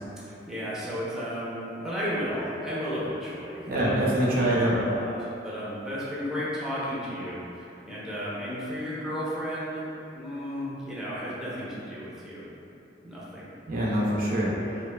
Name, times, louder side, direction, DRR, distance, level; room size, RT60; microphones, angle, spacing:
voice 1, 0.2-9.9 10.1-12.5 13.0-13.5, equal, 5° right, -9 dB, 0.6 m, -34 dB
voice 2, 3.7-4.8 13.7-14.8, right 1 dB, 50° right, -5 dB, 0.6 m, -25 dB
4.3 x 2.8 x 2.3 m, 2.9 s
head